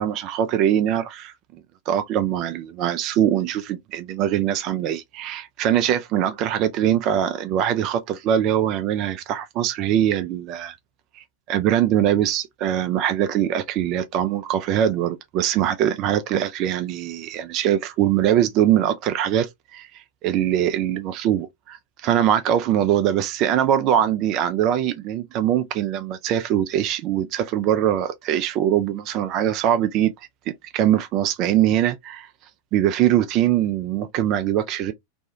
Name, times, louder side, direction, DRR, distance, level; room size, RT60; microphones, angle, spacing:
voice 1, 0.0-1.3 1.9-10.8 11.1-32.3 32.7-34.9, right 11 dB, 40° right, 0.3 m, -22 dB
2.5 x 2.3 x 2.7 m
figure-of-eight pair, 90°, 0 cm